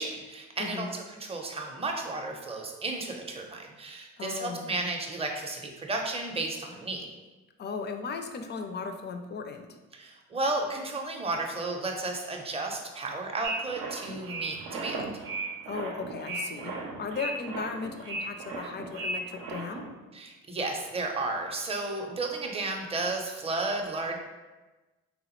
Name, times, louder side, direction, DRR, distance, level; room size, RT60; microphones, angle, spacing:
voice 1, 0.0-7.1 9.9-15.0 20.1-24.2, right 2 dB, 15° right, 2 dB, 0.5 m, -33 dB
voice 2, 0.6-0.9 4.2-4.7 7.6-9.8 15.7-19.9, left 4 dB, 30° left, 6 dB, 0.4 m, -36 dB
sound 1, 13.4-19.9, right 2 dB, 70° right, 0.6 m, -36 dB
3.5 x 2.0 x 2.9 m, 1.2 s
hypercardioid pair, 50°, 34 cm